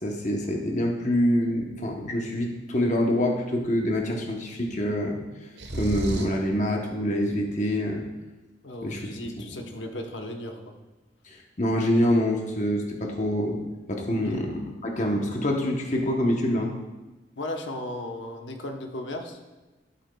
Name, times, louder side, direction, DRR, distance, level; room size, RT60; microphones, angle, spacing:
voice 1, 0.0-5.2 5.7-8.0 8.8-9.3 11.2-13.6 13.9-16.7, equal, 40° left, 1 dB, 0.9 m, -26 dB
sound 1, 5.6-6.5, right 1 dB, 65° right, 1.2 m, -31 dB
voice 2, 8.6-10.6 14.1-14.4 17.4-19.4, left 1 dB, 70° left, 3 dB, 1.0 m, -36 dB
12.5 x 8.0 x 2.3 m, 1.1 s
head